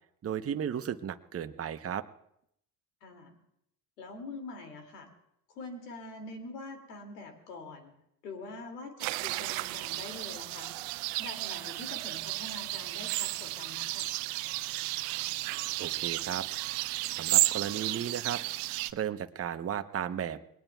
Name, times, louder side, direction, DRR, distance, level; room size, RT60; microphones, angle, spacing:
voice 1, 0.2-2.0 15.8-16.5 17.1-18.4 18.9-20.4, right 9 dB, 30° right, 8 dB, 1.0 m, -34 dB
voice 2, 3.0-3.3 4.0-5.1 5.5-7.9 8.2-10.7 11.2-14.1, left 3 dB, 85° left, 4 dB, 2.6 m, -44 dB
sound 1, 9.0-18.9, right 21 dB, 70° right, 0.7 m, -33 dB
28.0 x 20.5 x 2.4 m, 0.75 s
hypercardioid pair, 65°, 47 cm